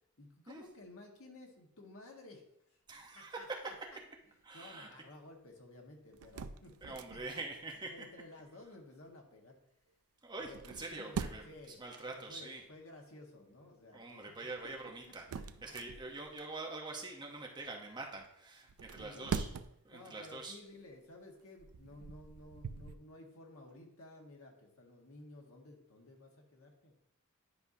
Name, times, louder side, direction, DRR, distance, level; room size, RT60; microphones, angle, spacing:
voice 1, 0.2-2.8 3.1-4.0 4.5-7.4 7.9-9.6 10.4-11.8 12.1-14.3 14.6-14.7 15.1-15.2 19.0-19.4 19.9-26.9, left 2 dB, 65° left, 1 dB, 1.5 m, -54 dB
voice 2, 2.9-3.7 4.4-4.9 6.8-7.9 10.2-12.6 13.9-19.5 19.8-20.6, right 3 dB, 20° right, 1 dB, 0.8 m, -45 dB
sound 1, 6.1-7.5 10.4-11.7 14.6-16.4 18.7-19.9 20.5-20.7 21.4-23.0, right 5 dB, 75° right, 0.4 m, -43 dB
10.5 x 5.5 x 2.7 m, 0.79 s
head